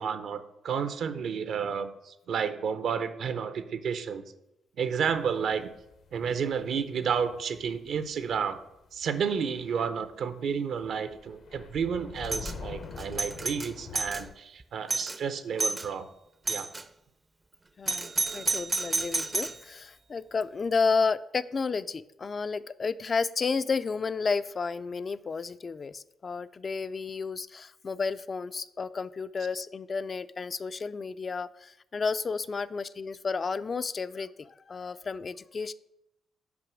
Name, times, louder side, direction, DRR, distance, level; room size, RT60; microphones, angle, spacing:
voice 1, 0.0-4.2 4.8-5.7 6.1-8.6 8.9-16.1 16.5-16.7, right 6 dB, 65° right, 11 dB, 0.7 m, -31 dB
sound 1, 5.1-9.7 9.9-10.1 10.5-14.3, left 4 dB, 65° left, 0.7 m, -45 dB
Doorbell, 12.2-12.5 13.0-14.2 14.6-14.7 14.9-15.2 15.6-15.9 16.5-16.8 17.9-19.6, right 3 dB, 25° right, 0.5 m, -30 dB
voice 2, 17.8-35.7, left 4 dB, 35° left, 13 dB, 0.3 m, -32 dB
5.9 x 5.1 x 6.1 m, 0.87 s
cardioid pair, 90°, 0 cm